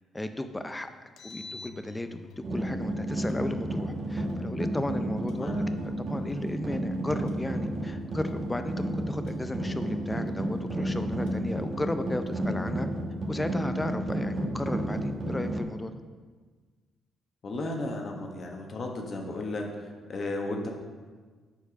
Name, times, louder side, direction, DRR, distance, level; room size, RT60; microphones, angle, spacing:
voice 1, 0.1-0.9 1.2-2.2 2.5-12.9 13.3-15.9, left 1 dB, 15° left, 9 dB, 0.5 m, -34 dB
Engine, 1.0-2.5 3.3-4.5 5.3-6.6 7.3-8.6 9.3-10.6 11.3-12.5, left 7 dB, 85° left, 0.7 m, -47 dB
sound 1, 2.4-15.6, right 1 dB, 45° right, 1.1 m, -32 dB
voice 2, 5.3-5.6 14.3-14.5 17.4-20.7, left 2 dB, 45° left, 2 dB, 1.2 m, -34 dB
7.0 x 4.5 x 5.1 m, 1.4 s
cardioid pair, 90°, 0 cm